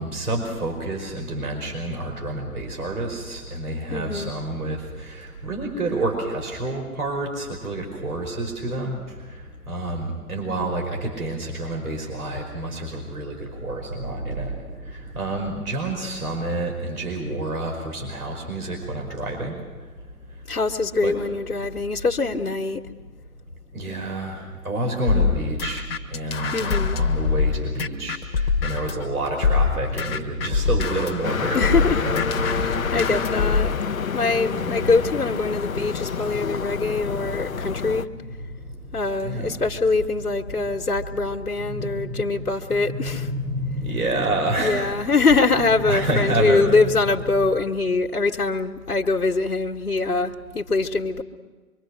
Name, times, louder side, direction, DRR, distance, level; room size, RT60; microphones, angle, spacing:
voice 1, 0.0-9.0 9.7-19.6 21.0-21.2 23.7-32.2 32.5-32.9 34.5-34.9 37.2-37.3 39.2-39.6 41.6-45.2 45.8-47.0 47.3-47.5, right 2 dB, 75° right, 5.3 m, -29 dB
voice 2, 3.9-4.3 20.5-22.8 26.5-27.0 31.5-32.0 32.6-33.8 34.1-38.1 38.9-43.3 44.6-51.2, left 3 dB, 85° left, 1.5 m, -23 dB
sound 1, 25.1-29.0 29.4-33.8, left 5 dB, 40° left, 1.3 m, -24 dB
sound 2, 31.2-38.1, left 6 dB, 65° left, 0.8 m, -28 dB
25.0 x 24.5 x 6.5 m
figure-of-eight pair, 135°, 45 cm